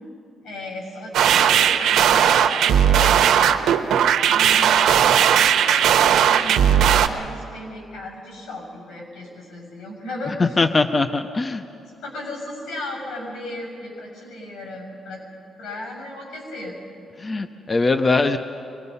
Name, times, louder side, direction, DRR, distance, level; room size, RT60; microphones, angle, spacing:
voice 1, 0.4-3.6 4.2-10.6 12.0-15.2 15.6-16.8, left 1 dB, 85° left, 0 dB, 6.9 m, -35 dB
sound 1, 1.1-7.1, right 9 dB, 85° right, 0.9 m, -17 dB
voice 2, 10.4-11.6 17.2-18.4, left 3 dB, 25° left, 9 dB, 0.5 m, -21 dB
24.5 x 20.5 x 5.5 m, 2.6 s
cardioid pair, 145°, 0 cm